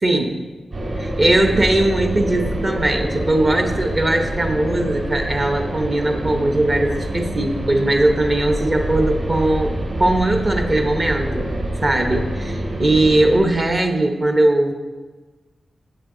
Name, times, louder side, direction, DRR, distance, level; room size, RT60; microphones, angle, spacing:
voice 1, 0.0-0.4 1.0-11.5 11.8-14.7, right 1 dB, 30° right, 5 dB, 0.9 m, -19 dB
sound 1, 0.7-13.4, right 1 dB, 50° right, 3.3 m, -26 dB
16.0 x 7.3 x 3.8 m, 1.3 s
wide cardioid pair, 160°, 0 cm